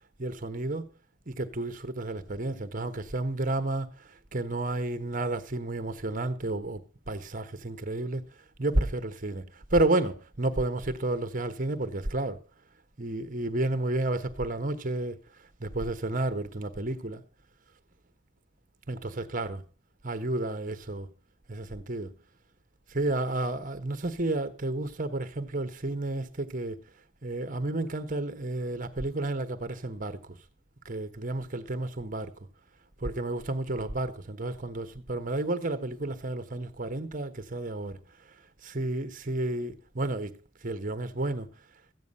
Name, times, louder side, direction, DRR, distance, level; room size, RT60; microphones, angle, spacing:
voice 1, 0.2-0.9 1.3-6.8 7.1-8.2 8.6-9.4 9.7-12.4 13.0-15.2 15.6-17.2 18.9-19.6 20.0-21.1 21.5-22.1 22.9-26.8 27.2-30.4 30.8-32.3 33.0-38.0 38.6-40.3 40.6-41.5, right 2 dB, 40° right, 1.2 m, -31 dB
14.0 x 9.3 x 5.4 m
head